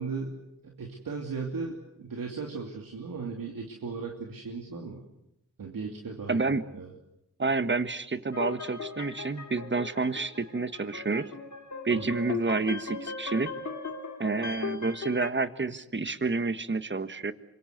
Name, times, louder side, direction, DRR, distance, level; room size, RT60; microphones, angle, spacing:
voice 1, 0.0-5.0 5.6-6.9 11.9-12.2, right 4 dB, 75° right, 1 dB, 3.0 m, -37 dB
voice 2, 6.3-6.6 7.4-11.3 11.8-13.5 14.2-17.3, right 3 dB, 35° right, 12 dB, 1.5 m, -29 dB
sound 1, 8.3-15.3, left 5 dB, 55° left, 2.5 m, -38 dB
25.5 x 23.5 x 8.1 m, 0.85 s
cardioid pair, 65°, 34 cm